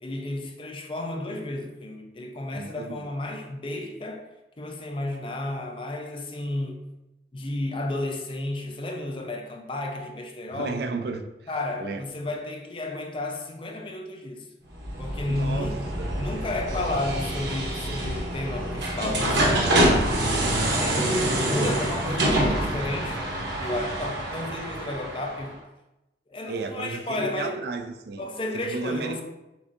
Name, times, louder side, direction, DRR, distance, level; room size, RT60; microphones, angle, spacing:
voice 1, 0.0-4.3 4.6-6.9 7.3-10.9 11.5-14.5 15.0-15.9 16.2-23.2 23.6-25.6 26.3-27.6 28.2-29.2, left 1 dB, 30° left, 0.5 m, -32 dB
voice 2, 2.5-3.0 10.5-11.3 11.8-12.0 15.3-15.7 16.0-16.1 21.0-21.2 26.5-28.3 28.6-29.2, right 4 dB, 60° right, 0.4 m, -33 dB
sound 1, 14.7-25.5, right 1 dB, 75° right, 0.9 m, -26 dB
6.9 x 2.6 x 2.5 m
head